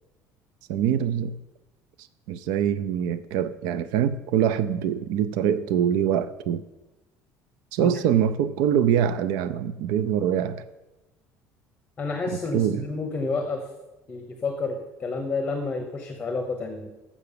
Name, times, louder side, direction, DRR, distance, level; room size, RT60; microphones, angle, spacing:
voice 1, 0.7-1.4 2.3-6.6 7.7-10.6 12.5-12.8, right 9 dB, 80° right, 14 dB, 0.4 m, -24 dB
voice 2, 12.0-13.7 14.1-16.9, left 3 dB, 15° left, 4 dB, 0.8 m, -30 dB
7.2 x 6.9 x 6.8 m, 1.1 s
cardioid pair, 165°, 6 cm